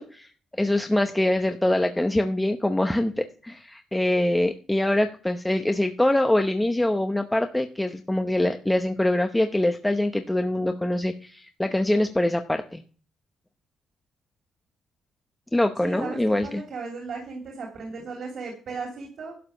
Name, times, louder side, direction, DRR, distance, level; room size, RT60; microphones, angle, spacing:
voice 1, 0.0-12.8 15.5-16.6, left 1 dB, 10° left, 6 dB, 0.8 m, -24 dB
voice 2, 15.8-19.3, right 4 dB, 60° right, 1 dB, 3.2 m, -36 dB
12.0 x 4.9 x 7.0 m, 0.41 s
cardioid pair, 90°, 0 cm